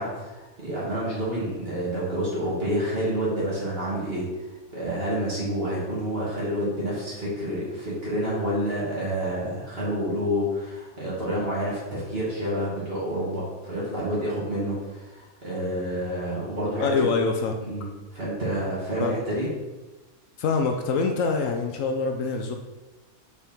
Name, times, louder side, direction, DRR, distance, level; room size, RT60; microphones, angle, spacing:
voice 1, 0.0-4.2 4.7-17.0 17.6-19.5, equal, 40° right, -7 dB, 2.6 m, -28 dB
voice 2, 16.8-17.6 19.0-19.2 20.4-22.5, left 4 dB, 70° left, 4 dB, 1.0 m, -25 dB
5.3 x 4.9 x 4.4 m, 1.1 s
omnidirectional pair, 1.5 m